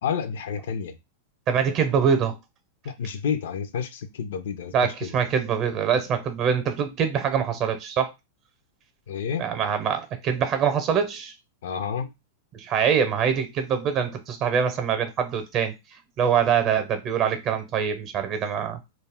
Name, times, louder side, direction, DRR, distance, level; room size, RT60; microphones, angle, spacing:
voice 1, 0.0-1.0 2.8-5.1 9.1-9.5 11.6-12.1, left 7 dB, 75° left, 0.4 m, -30 dB
voice 2, 1.5-2.4 4.7-8.1 9.4-11.3 12.5-15.7 16.2-18.8, right 7 dB, 40° right, 0.6 m, -24 dB
2.3 x 2.1 x 3.4 m
hypercardioid pair, 115°, 0 cm